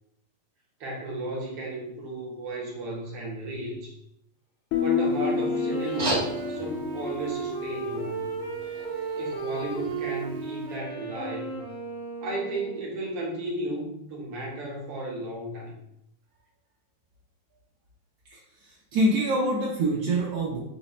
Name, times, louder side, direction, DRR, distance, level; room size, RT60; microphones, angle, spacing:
voice 1, 0.8-4.0 4.8-8.3 9.2-11.6 12.2-15.7, right 2 dB, 65° right, -3 dB, 1.5 m, -34 dB
Guitar, 4.7-8.3, left 5 dB, 75° left, 1.8 m, -29 dB
Wind instrument woodwind instrument, 5.2-12.9, right 4 dB, 20° left, 0.6 m, -35 dB
sound 1, 5.8-10.8, right 1 dB, 40° right, 0.6 m, -37 dB
voice 2, 18.3-20.6, right 1 dB, 90° right, -3 dB, 1.3 m, -26 dB
5.7 x 2.0 x 4.1 m, 0.80 s
omnidirectional pair, 3.4 m